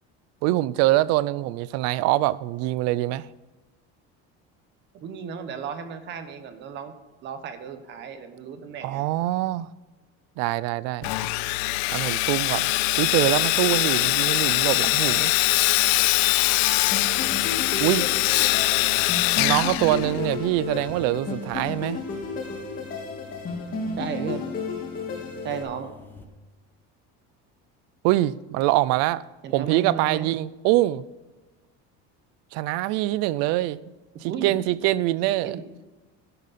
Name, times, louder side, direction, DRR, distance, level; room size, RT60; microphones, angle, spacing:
voice 1, 0.4-3.3 8.8-9.7 10.4-11.0 11.9-12.7 13.0-15.3 17.8-18.1 19.4-22.0 28.0-29.2 29.5-31.0 32.5-33.8 34.2-35.6, right 16 dB, 60° right, 0.5 m, -24 dB
voice 2, 4.9-6.9 7.2-9.0 11.0-11.1 24.0-24.5 25.4-25.9 29.4-30.3 34.2-34.5 35.2-35.6, right 7 dB, 35° right, 1.1 m, -34 dB
Sawing, 11.0-20.5, left 20 dB, 70° left, 0.5 m, -22 dB
sound 1, 16.9-25.6, left 4 dB, 30° left, 2.3 m, -33 dB
sound 2, 17.2-26.2, left 3 dB, 5° left, 0.9 m, -47 dB
12.5 x 11.0 x 4.2 m
cardioid pair, 180°, 30 cm